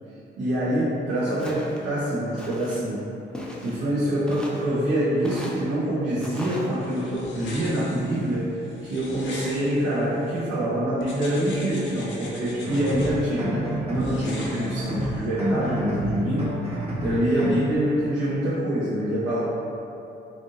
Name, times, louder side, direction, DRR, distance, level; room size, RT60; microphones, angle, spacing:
voice 1, 0.4-3.1 3.6-8.5 8.8-16.5 17.0-19.4, right 1 dB, 70° right, -11 dB, 0.9 m, -25 dB
Walk footsteps, 1.4-1.8 2.4-2.8 3.3-3.9 4.3-4.7 5.2-5.7 6.2-6.7, equal, 5° left, 0.5 m, -38 dB
sound 1, 6.3-10.5 11.0-13.1 13.9-15.3, left 2 dB, 70° left, 0.8 m, -42 dB
sound 2, 12.6-17.6, right 1 dB, 30° right, 0.8 m, -30 dB
3.6 x 2.6 x 3.6 m, 2.9 s
cardioid pair, 90°, 20 cm